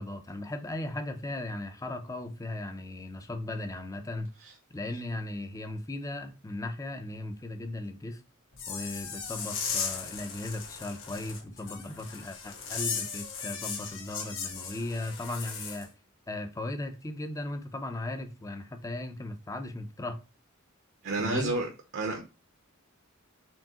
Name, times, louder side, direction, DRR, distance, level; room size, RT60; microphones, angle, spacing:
voice 1, 0.0-4.3 4.7-8.2 8.7-15.9 16.3-20.2 21.2-21.5, left 2 dB, 15° left, 0.5 m, -37 dB
sound 1, 8.5-15.8, left 6 dB, 65° left, 1.3 m, -37 dB
voice 2, 21.0-22.2, right 2 dB, 60° right, 0.7 m, -31 dB
4.5 x 3.4 x 2.9 m
head